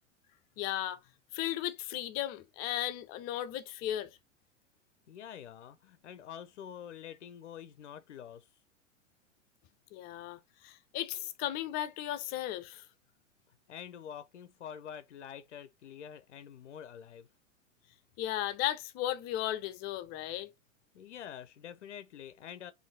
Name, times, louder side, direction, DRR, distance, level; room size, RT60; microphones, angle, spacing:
voice 1, 0.6-1.0 1.3-4.2 9.9-12.9 18.2-20.5, left 13 dB, 25° left, 0.5 m, -35 dB
voice 2, 5.1-8.5 13.7-17.3 20.9-22.7, left 9 dB, 65° left, 0.6 m, -47 dB
4.5 x 2.7 x 4.0 m
figure-of-eight pair, 95°, 38 cm